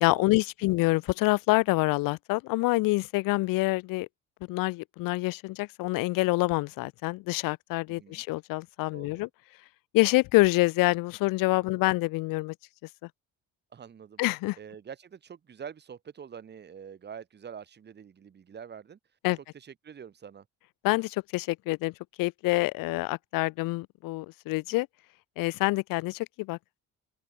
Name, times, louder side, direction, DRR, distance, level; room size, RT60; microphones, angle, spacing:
voice 1, 0.0-4.1 4.5-9.3 9.9-12.5 14.2-14.6 19.2-19.4 20.8-24.9 25.4-26.6, left 22 dB, 85° left, 0.5 m, -26 dB
voice 2, 7.9-8.2 8.9-9.2 13.7-14.2 14.6-19.0 19.5-20.5, right 7 dB, 30° right, 3.5 m, -45 dB
open air
cardioid pair, 170°, 33 cm